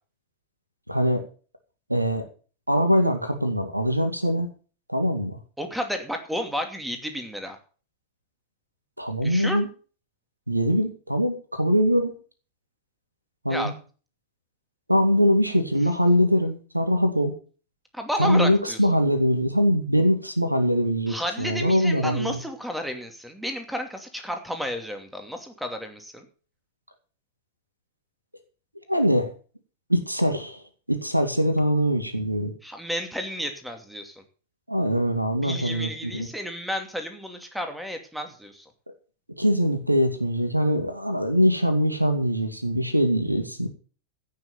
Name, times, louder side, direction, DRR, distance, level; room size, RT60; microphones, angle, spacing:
voice 1, 0.9-1.2 1.9-2.2 2.7-4.5 4.9-5.4 9.0-9.7 10.5-12.1 13.4-13.7 14.9-17.4 18.2-22.4 28.9-29.3 29.9-32.5 34.7-36.3 39.4-43.7, equal, 85° right, 8 dB, 2.1 m, -22 dB
voice 2, 5.6-7.6 9.2-9.6 13.5-13.7 17.9-18.8 21.1-26.3 32.6-34.2 35.4-38.7, equal, ahead, 6 dB, 2.5 m, -32 dB
16.0 x 6.7 x 6.8 m, 0.39 s
figure-of-eight pair, 90°, 0 cm